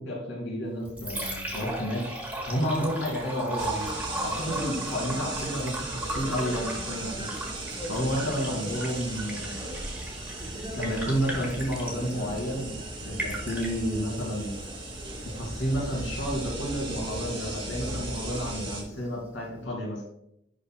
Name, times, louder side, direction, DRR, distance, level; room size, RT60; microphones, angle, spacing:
voice 1, 0.0-2.0 2.5-7.3 7.9-9.7 10.7-12.8 13.0-14.6 15.3-20.0, equal, 85° left, -3 dB, 2.4 m, -31 dB
Liquid, 0.6-19.6, right 1 dB, 10° right, 1.4 m, -38 dB
sound 1, 3.6-18.8, right 2 dB, 25° right, 1.3 m, -36 dB
10.5 x 4.1 x 2.2 m, 0.78 s
head